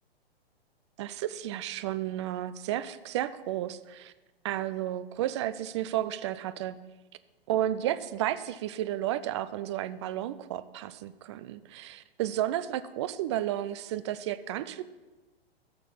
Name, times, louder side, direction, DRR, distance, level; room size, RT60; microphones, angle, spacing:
voice 1, 1.0-4.1 4.4-6.8 7.5-14.8, right 12 dB, 30° right, 14 dB, 0.4 m, -32 dB
15.0 x 6.7 x 5.5 m, 1.2 s
figure-of-eight pair, 115°, 31 cm